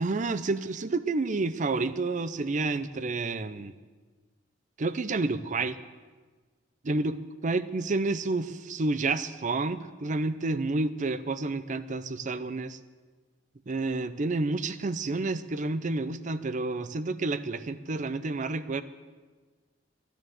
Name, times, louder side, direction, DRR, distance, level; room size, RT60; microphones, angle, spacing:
voice 1, 0.0-3.7 4.8-5.8 6.8-7.2 7.4-12.8 13.7-18.8, right 3 dB, 40° right, 13 dB, 0.5 m, -29 dB
12.5 x 10.0 x 7.8 m, 1.4 s
head